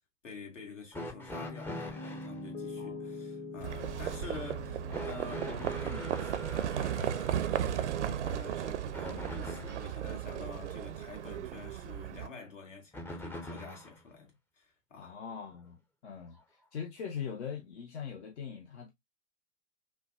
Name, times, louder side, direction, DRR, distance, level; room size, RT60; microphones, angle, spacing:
voice 1, 0.2-15.2, left 4 dB, 80° left, 2.0 m, -48 dB
sound 1, 0.9-2.4 4.9-10.0 12.9-14.0 15.2-15.3 16.4-16.5, equal, 5° left, 0.5 m, -43 dB
Piano, 1.1-9.2, left 3 dB, 30° left, 0.9 m, -46 dB
voice 2, 2.8-3.1 3.8-4.1 5.9-6.1 15.0-18.9, left 7 dB, 65° left, 0.8 m, -42 dB
Livestock farm animals working animals, 3.6-12.3, right 10 dB, 70° right, 0.6 m, -35 dB
5.7 x 2.2 x 2.5 m
figure-of-eight pair, 95°, 37 cm